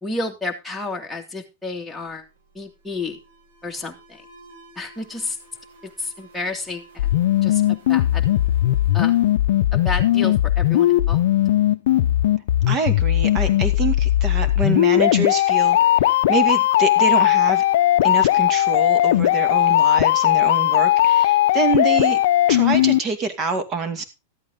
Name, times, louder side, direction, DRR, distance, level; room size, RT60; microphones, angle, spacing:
voice 1, 0.0-2.3 2.5-3.2 3.6-4.2 4.8-5.4 5.8-7.1 7.4-8.3 8.9-9.2 9.7-11.2, left 3 dB, ahead, -1 dB, 2.3 m, -31 dB
Alarm, 1.9-10.5, right 2 dB, 70° right, 6.9 m, -51 dB
sound 1, 7.0-23.0, left 13 dB, 70° left, 0.6 m, -18 dB
voice 2, 12.7-17.6 18.0-22.2 22.5-24.0, right 4 dB, 30° right, 8 dB, 2.3 m, -26 dB
13.5 x 8.7 x 3.8 m, 0.26 s
supercardioid pair, 135°, 0 cm